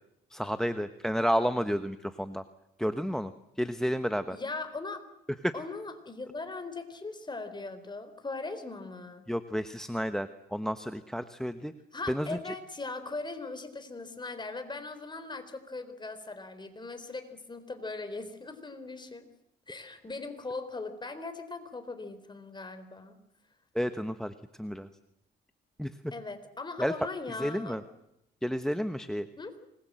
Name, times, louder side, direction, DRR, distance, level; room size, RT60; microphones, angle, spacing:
voice 1, 0.3-2.4 2.8-4.4 5.4-5.5 9.3-11.7 12.1-12.5 23.7-24.9 25.8-25.9 26.8-26.9 27.4-27.8 28.4-29.3, equal, 5° left, 10 dB, 1.1 m, -31 dB
voice 2, 4.3-5.0 5.5-9.3 11.9-19.3 19.7-23.2 26.1-27.8 29.4-29.5, left 3 dB, 20° left, 9 dB, 4.1 m, -39 dB
26.0 x 21.0 x 7.6 m, 0.80 s
cardioid pair, 90°, 20 cm